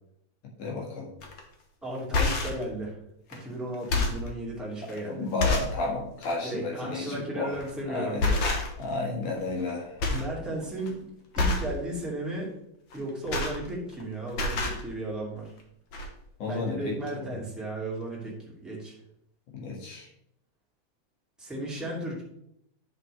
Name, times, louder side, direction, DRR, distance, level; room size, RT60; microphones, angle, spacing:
voice 1, 0.6-1.1 5.1-7.6 7.9-8.2 8.8-10.0 16.4-17.0 19.5-20.1, left 3 dB, 75° left, -2 dB, 3.3 m, -32 dB
sound 1, 1.2-1.4 2.0-2.6 3.3-3.4 3.7-4.3 4.9-5.0 5.4-5.8 6.2-6.4 7.5-7.8 8.2-8.9 9.2-9.7 10.0-10.3 10.6-10.9 11.3-11.7 12.9-14.0 14.3-14.8 15.6-15.7 15.9-16.1, left 3 dB, 50° left, 1.5 m, -27 dB
voice 2, 1.8-3.0 3.3-5.3 6.4-8.6 10.1-11.1 11.4-12.5 12.9-15.5 16.4-19.0 21.4-22.2, right 1 dB, ahead, -5 dB, 2.0 m, -35 dB
9.8 x 6.5 x 3.3 m, 0.76 s
omnidirectional pair, 3.5 m